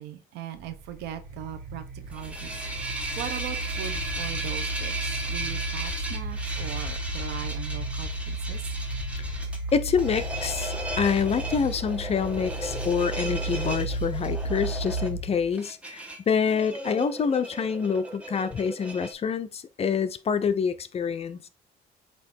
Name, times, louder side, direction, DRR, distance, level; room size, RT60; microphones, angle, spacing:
voice 1, 0.0-2.5 2.8-8.6 9.2-9.4, right 11 dB, 85° right, 1.0 m, -39 dB
sound 1, 0.6-15.5, right 1 dB, 65° right, 1.3 m, -33 dB
sound 2, 2.0-19.1, right 1 dB, 5° right, 1.6 m, -36 dB
voice 2, 9.7-21.4, left 6 dB, 35° left, 0.6 m, -27 dB
7.9 x 3.0 x 4.4 m
cardioid pair, 110°, 17 cm